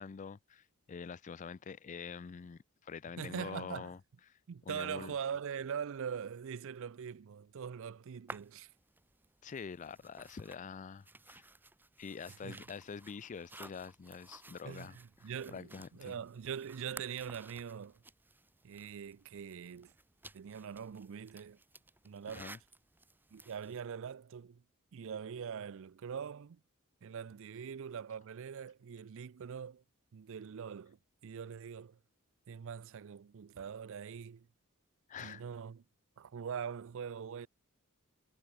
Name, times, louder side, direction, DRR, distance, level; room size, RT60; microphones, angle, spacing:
voice 1, 0.0-4.0 4.3-4.4 4.7-5.1 9.4-11.4 12.0-15.0 15.2-16.1 22.3-22.6 35.1-35.4, left 6 dB, 35° left, 0.4 m, -46 dB
voice 2, 3.2-3.9 4.5-8.7 12.4-12.6 14.6-18.0 18.6-19.9 20.3-21.6 22.0-22.5 23.3-24.6 24.9-26.6 27.0-29.8 30.1-31.0 31.2-32.0 32.5-34.5 35.2-35.8 36.2-37.5, right 7 dB, 65° right, 0.4 m, -42 dB
sound 1, 8.3-23.9, right 2 dB, 10° right, 0.9 m, -55 dB
head